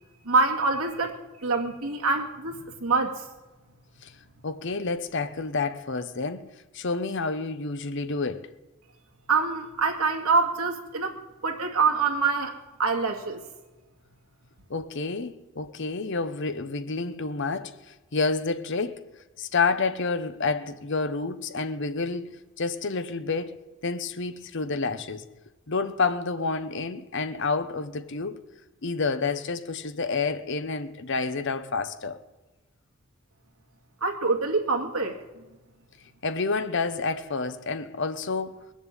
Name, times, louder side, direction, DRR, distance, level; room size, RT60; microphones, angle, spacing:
voice 1, 0.2-3.3 9.3-13.4 34.0-35.4, right 4 dB, 85° right, 2.2 m, -26 dB
voice 2, 4.4-8.5 14.7-19.0 19.4-23.6 23.8-25.2 25.7-28.4 28.8-32.2 36.2-38.6, left 4 dB, 55° left, 0.9 m, -29 dB
20.5 x 7.4 x 9.0 m
head